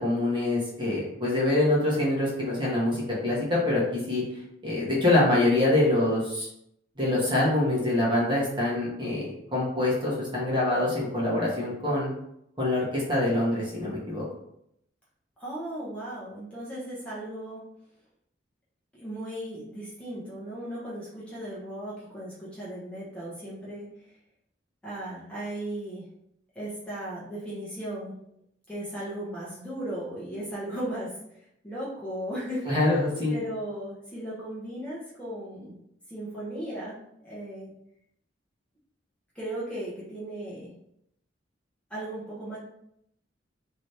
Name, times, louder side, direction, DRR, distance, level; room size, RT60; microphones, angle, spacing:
voice 1, 0.0-4.2 4.6-6.5 7.0-12.1 12.6-14.2 32.7-33.3, left 2 dB, 25° right, -5 dB, 1.1 m, -25 dB
voice 2, 15.4-17.6 18.9-23.9 24.8-26.0 26.5-28.1 28.7-31.4 31.6-32.6 33.3-35.7 36.1-37.0 37.2-37.7 39.3-40.7 41.9-42.6, right 1 dB, 5° left, -8 dB, 0.9 m, -36 dB
3.1 x 2.7 x 3.2 m, 0.76 s
head